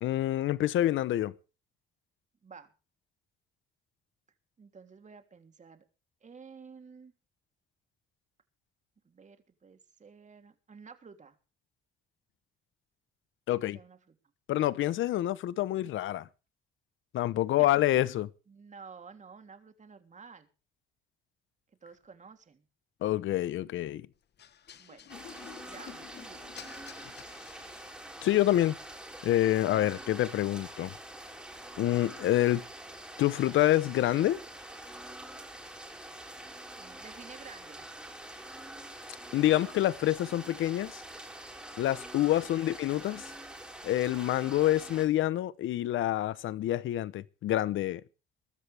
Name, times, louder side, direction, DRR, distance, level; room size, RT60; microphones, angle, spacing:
voice 1, 0.0-1.3 13.5-13.8 14.5-16.3 17.1-18.3 23.0-24.1 28.2-28.8 29.2-30.9 31.8-32.6 33.2-34.4 39.3-41.0 41.8-43.2 43.8-48.0, left 14 dB, 80° left, 0.9 m, -27 dB
voice 2, 2.4-2.7 4.6-5.8 6.2-7.1 9.0-11.4 13.5-14.1 17.6-17.7 18.5-20.5 21.8-22.7 24.8-25.1 25.6-26.5 30.5-30.7 36.7-37.8 42.4-42.5, right 5 dB, 35° right, 3.3 m, -52 dB
sound 1, 24.4-28.3, left 9 dB, 55° left, 1.3 m, -50 dB
sound 2, 25.1-45.1, right 1 dB, 5° right, 6.3 m, -45 dB
22.0 x 13.0 x 3.5 m
cardioid pair, 90°, 20 cm